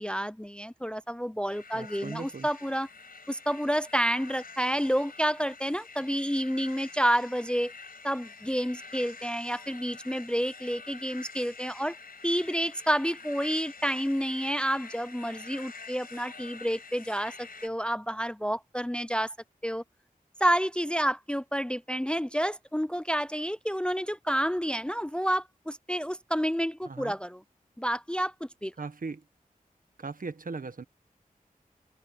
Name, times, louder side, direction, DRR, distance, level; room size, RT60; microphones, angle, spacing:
voice 1, 0.0-2.9 3.3-7.7 8.0-12.0 12.2-19.3 19.6-19.8 20.4-27.4 27.8-28.7, equal, 5° left, 0.5 m, -29 dB
sound 1, 1.5-17.7, left 4 dB, 90° left, 4.9 m, -47 dB
voice 2, 1.7-2.5 26.8-27.2 28.8-29.2 30.0-30.8, right 4 dB, 70° right, 1.5 m, -38 dB
wide cardioid pair, 75°, 15 cm